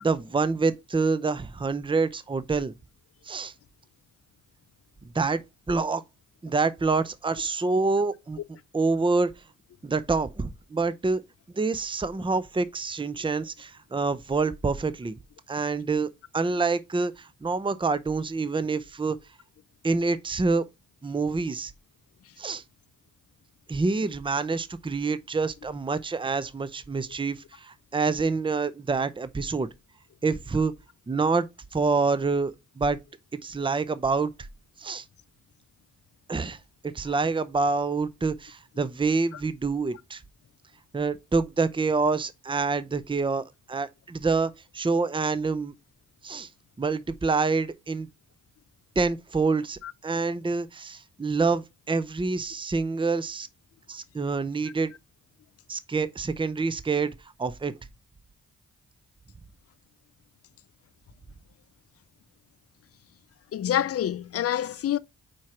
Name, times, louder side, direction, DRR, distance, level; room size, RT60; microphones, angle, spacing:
voice 1, 0.0-2.7 3.3-3.5 5.1-5.4 5.7-6.0 6.4-8.4 8.7-9.3 9.8-11.2 11.6-15.2 15.5-19.2 19.8-20.6 21.0-21.7 22.4-22.6 23.7-29.7 30.2-30.7 31.1-31.5 31.7-33.0 33.4-34.3 34.8-35.0 36.3-36.6 36.8-40.2 40.9-45.7 46.2-46.5 46.8-48.1 49.0-53.5 53.9-54.9 55.7-57.7, right 4 dB, 15° right, 0.7 m, -27 dB
voice 2, 63.5-65.0, left 11 dB, 50° left, 0.5 m, -27 dB
4.6 x 4.5 x 5.8 m
cardioid pair, 60°, 30 cm